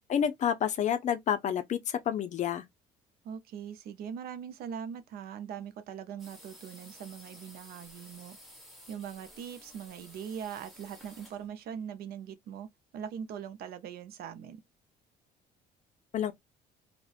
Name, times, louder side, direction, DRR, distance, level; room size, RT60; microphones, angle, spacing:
voice 1, 0.1-2.6 16.1-16.3, left 9 dB, 45° left, 0.5 m, -29 dB
voice 2, 3.2-8.4 8.9-12.7 12.9-14.6, right 8 dB, 65° right, 0.5 m, -41 dB
sound 1, 6.2-11.5, equal, ahead, 1.1 m, -53 dB
2.4 x 2.1 x 2.3 m
cardioid pair, 110°, 17 cm